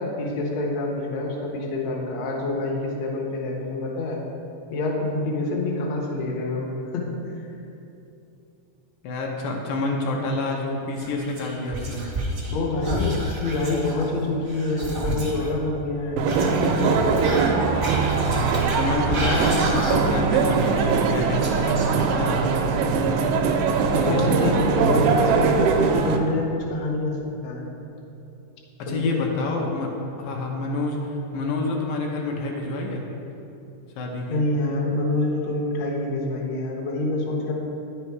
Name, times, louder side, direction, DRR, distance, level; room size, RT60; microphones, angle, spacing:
voice 1, 0.0-4.2 4.7-7.5 12.5-17.0 24.0-27.6 28.9-29.3 34.3-37.5, left 2 dB, 65° left, -1 dB, 2.0 m, -26 dB
voice 2, 9.0-12.0 18.2-23.3 23.9-25.2 28.8-29.9 30.2-33.0 34.0-34.4, left 2 dB, 85° left, 0 dB, 2.4 m, -28 dB
Whispering, 11.0-12.6 12.8-15.5 16.2-20.2 20.5-22.3, right 1 dB, 45° right, 0.6 m, -31 dB
sound 1, 16.2-26.2, right 5 dB, 85° right, 2.3 m, -21 dB
9.8 x 5.6 x 4.7 m, 2.8 s
omnidirectional pair, 3.8 m